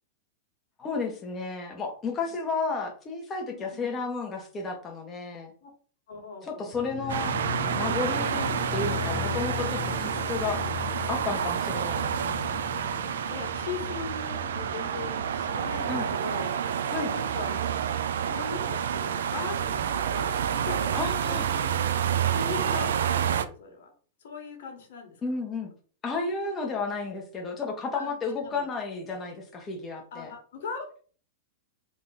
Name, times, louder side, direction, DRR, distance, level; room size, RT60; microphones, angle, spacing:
voice 1, 0.8-5.5 6.4-7.3 7.7-10.7 11.1-12.5 15.9-16.1 16.9-17.1 20.9-21.5 25.2-25.7 26.0-30.3, left 4 dB, 20° left, 2 dB, 1.4 m, -32 dB
voice 2, 3.5-4.0 5.6-5.7 6.1-6.7 9.7-10.4 13.3-16.8 17.1-17.6 18.2-21.8 22.3-23.9 24.2-25.1 27.9-28.7 30.1-31.0, left 5 dB, 70° left, 2 dB, 1.6 m, -40 dB
sound 1, 6.7-17.6 17.9-18.0, left 14 dB, 40° left, 0.3 m, -39 dB
sound 2, 7.1-23.5, right 8 dB, 85° right, 0.5 m, -29 dB
3.8 x 3.0 x 4.0 m, 0.41 s
hypercardioid pair, 135°, 0 cm